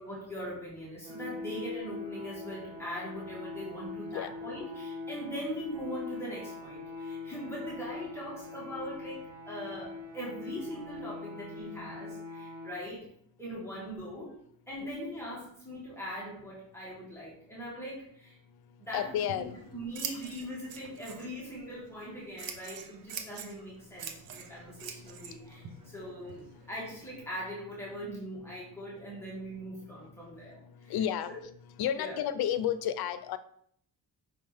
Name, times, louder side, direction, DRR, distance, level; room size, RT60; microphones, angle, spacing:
voice 1, 0.0-13.0 13.4-14.3 14.7-18.4 18.8-30.6 30.8-31.0 31.3-31.4 32.0-32.2, equal, 5° left, -7 dB, 2.2 m, -41 dB
sound 1, 1.0-12.7, left 4 dB, 10° right, 2.3 m, -42 dB
voice 2, 18.7-19.9 24.3-26.7 28.5-29.3 29.7-31.3 31.8-33.4, left 10 dB, 90° left, 13 dB, 0.6 m, -35 dB
Scissors, 19.1-27.2, right 7 dB, 70° right, 0.9 m, -45 dB
5.8 x 5.4 x 3.5 m, 0.65 s
cardioid pair, 145°, 36 cm